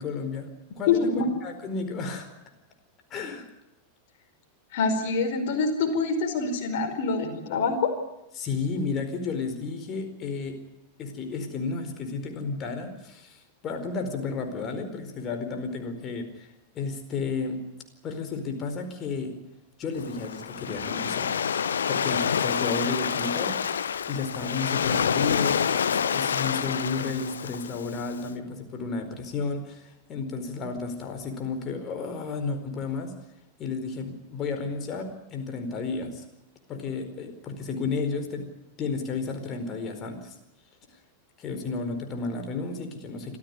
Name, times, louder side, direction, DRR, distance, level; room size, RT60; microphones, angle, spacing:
voice 1, 0.0-2.3 3.1-3.5 8.3-10.6 11.0-16.5 16.7-17.6 18.0-19.4 19.8-21.3 21.9-33.1 33.6-36.2 36.7-38.5 38.8-40.3 41.4-43.4, left 4 dB, 30° left, 6 dB, 4.6 m, -32 dB
voice 2, 0.9-1.3 4.7-7.9, left 4 dB, 50° left, 6 dB, 4.8 m, -25 dB
Waves surf, 20.0-28.2, left 7 dB, 65° left, 0.9 m, -27 dB
25.5 x 15.0 x 9.7 m, 0.92 s
figure-of-eight pair, 90°, 0 cm